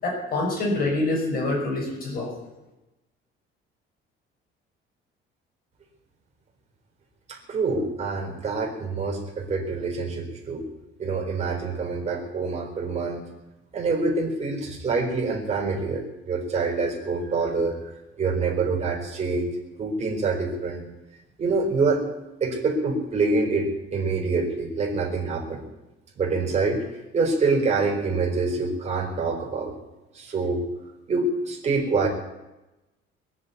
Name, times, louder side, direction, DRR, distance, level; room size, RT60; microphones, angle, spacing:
voice 1, 0.0-2.3, left 2 dB, 45° left, -2 dB, 5.9 m, -26 dB
voice 2, 7.3-10.6 11.0-13.2 13.7-17.8 18.2-19.5 19.8-20.8 21.4-22.1 22.4-25.6 26.2-26.8 27.1-29.7 30.1-30.6 31.1-32.1, right 3 dB, 30° right, -1 dB, 4.4 m, -26 dB
22.0 x 7.5 x 8.5 m, 1.0 s
cardioid pair, 165°, 21 cm